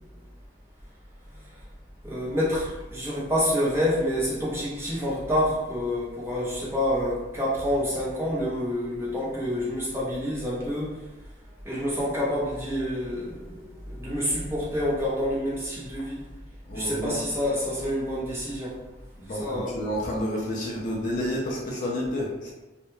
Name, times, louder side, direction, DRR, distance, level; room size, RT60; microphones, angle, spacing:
voice 1, 2.0-10.9 11.7-13.6 13.9-16.2 16.7-18.7 19.4-19.7, equal, 15° right, -7 dB, 0.6 m, -27 dB
voice 2, 16.7-17.1 19.2-22.5, left 1 dB, 45° left, -3 dB, 0.4 m, -30 dB
2.2 x 2.1 x 3.0 m, 1.1 s
head